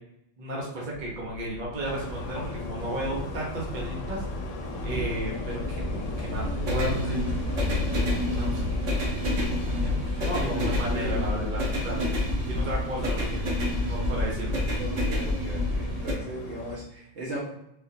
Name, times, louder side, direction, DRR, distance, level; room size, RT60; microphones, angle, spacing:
voice 1, 0.4-4.2 4.8-7.2 8.2-8.9 10.2-12.0 12.4-13.5 13.8-14.6, right 1 dB, 45° right, -4 dB, 0.9 m, -33 dB
sound 1, 1.0-16.1, left 1 dB, 85° right, 1.2 m, -29 dB
sound 2, 1.8-16.8, left 3 dB, 85° left, 0.9 m, -37 dB
voice 2, 9.7-11.6 14.8-17.4, equal, 65° right, -4 dB, 1.3 m, -38 dB
3.6 x 2.5 x 2.7 m, 0.80 s
omnidirectional pair, 1.3 m